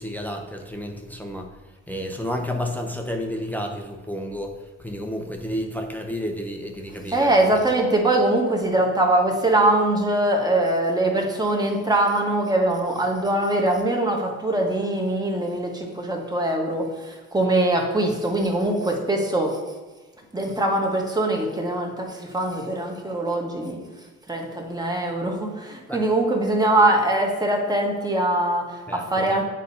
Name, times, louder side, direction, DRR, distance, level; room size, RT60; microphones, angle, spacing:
voice 1, 0.0-1.5 1.9-4.5 4.8-7.3 25.9-26.0 28.9-29.3, equal, 5° left, 2 dB, 0.6 m, -31 dB
voice 2, 7.1-19.6 20.3-23.8 24.3-29.4, right 1 dB, 15° right, 1 dB, 1.3 m, -22 dB
9.0 x 4.0 x 2.8 m, 1.3 s
cardioid pair, 90°, 30 cm